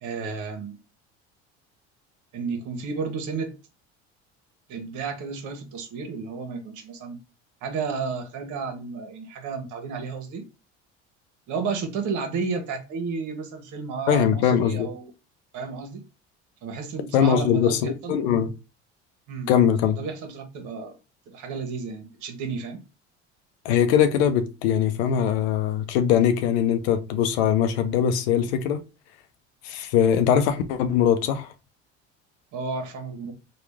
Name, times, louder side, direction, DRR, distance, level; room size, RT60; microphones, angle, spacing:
voice 1, 0.0-0.8 2.3-3.5 4.7-7.2 7.6-10.4 11.5-15.1 15.5-16.0 16.6-18.1 19.3-19.5 20.0-21.0 21.3-22.8 32.5-33.3, right 5 dB, 65° right, 1.1 m, -32 dB
voice 2, 14.1-14.9 17.1-18.5 19.5-20.0 23.6-28.8 29.6-31.5, left 8 dB, 85° left, 0.6 m, -21 dB
3.1 x 2.4 x 3.5 m
supercardioid pair, 80°, 32 cm